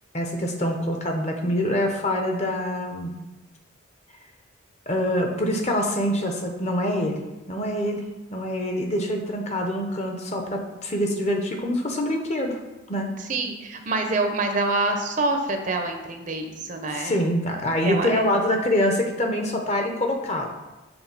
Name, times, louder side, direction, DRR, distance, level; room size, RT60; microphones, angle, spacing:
voice 1, 0.1-3.1 4.9-7.2 7.5-8.0 8.3-12.6 12.9-13.1 16.9-20.5, left 1 dB, 35° left, 3 dB, 0.8 m, -25 dB
voice 2, 13.2-17.2 17.8-18.2, right 2 dB, 40° right, 5 dB, 0.7 m, -26 dB
7.0 x 3.7 x 5.9 m, 1.1 s
head